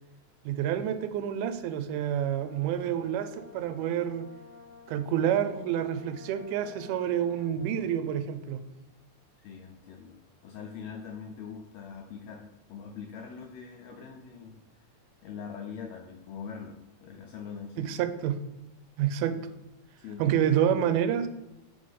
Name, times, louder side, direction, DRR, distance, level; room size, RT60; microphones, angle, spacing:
voice 1, 0.5-4.3 4.9-8.6 17.8-18.4 19.0-19.4 20.2-21.3, right 9 dB, 85° right, 10 dB, 2.1 m, -28 dB
Brass instrument, 2.0-7.9, left 4 dB, 55° left, 1.4 m, -52 dB
voice 2, 9.4-14.6 15.2-18.0 19.3-19.4 20.0-20.4, left 6 dB, 80° left, 2 dB, 1.6 m, -43 dB
5.2 x 3.6 x 5.5 m, 0.94 s
omnidirectional pair, 3.6 m